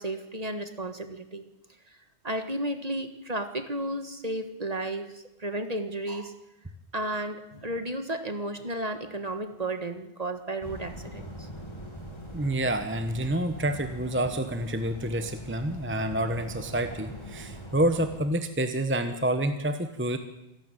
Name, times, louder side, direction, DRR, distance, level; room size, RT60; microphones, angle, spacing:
voice 1, 0.0-1.5 2.2-6.4 6.9-11.5, right 1 dB, 35° right, 8 dB, 1.7 m, -33 dB
sound 1, 10.6-18.2, equal, 25° left, 2.9 m, -42 dB
voice 2, 12.3-20.2, right 1 dB, 10° right, 8 dB, 1.1 m, -28 dB
26.0 x 12.5 x 9.2 m, 0.95 s
omnidirectional pair, 1.2 m